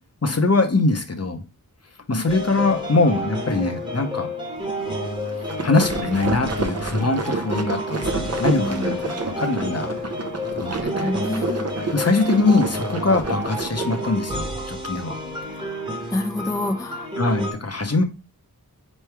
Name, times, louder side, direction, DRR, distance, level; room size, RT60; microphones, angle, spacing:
voice 1, 0.2-1.4 2.1-4.3 5.4-10.0 10.6-11.2 11.9-15.2 17.2-18.0, left 3 dB, 45° left, 5 dB, 0.8 m, -22 dB
sound 1, 2.3-17.5, equal, 15° right, 1.2 m, -30 dB
sound 2, 5.2-14.1, right 3 dB, 45° right, 0.6 m, -29 dB
voice 2, 8.6-9.2 10.7-11.6 15.4-15.8 16.1-17.1, left 1 dB, 10° left, 4 dB, 0.4 m, -28 dB
4.5 x 3.2 x 3.3 m, 0.31 s
wide cardioid pair, 55°, 36 cm